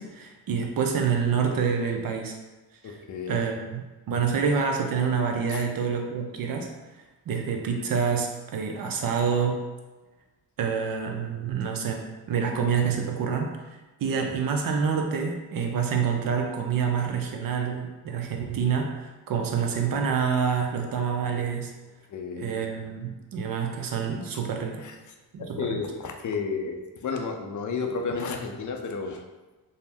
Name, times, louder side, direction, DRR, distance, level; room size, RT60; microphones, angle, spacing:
voice 1, 0.0-2.3 2.8-3.0 3.3-6.7 7.3-9.7 10.6-13.5 14.0-21.7 22.4-24.9 25.3-25.8, right 6 dB, 55° right, 3 dB, 0.5 m, -27 dB
voice 2, 2.8-3.4 5.5-5.6 22.1-22.6 24.8-25.0 25.4-29.2, left 5 dB, 45° left, 3 dB, 0.5 m, -32 dB
2.6 x 2.0 x 3.3 m, 1.2 s
cardioid pair, 70°, 42 cm